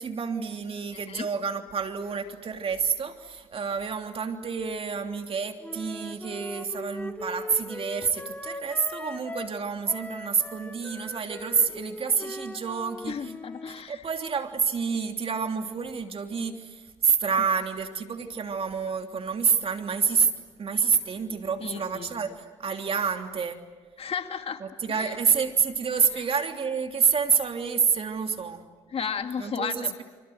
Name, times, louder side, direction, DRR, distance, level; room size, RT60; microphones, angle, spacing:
voice 1, 0.0-13.3 13.9-20.3 20.6-23.6 24.6-28.6 29.4-30.0, right 6 dB, 45° right, 5 dB, 3.1 m, -28 dB
voice 2, 0.9-1.3 13.1-14.0 21.6-22.4 24.0-24.6 24.9-25.2 26.1-26.2 28.9-30.0, left 7 dB, 50° left, 7 dB, 2.2 m, -34 dB
Wind instrument woodwind instrument, 5.6-9.6 9.8-13.8, left 1 dB, 10° left, 2.9 m, -40 dB
29.0 x 26.0 x 7.9 m, 1.3 s
supercardioid pair, 60°, 13 cm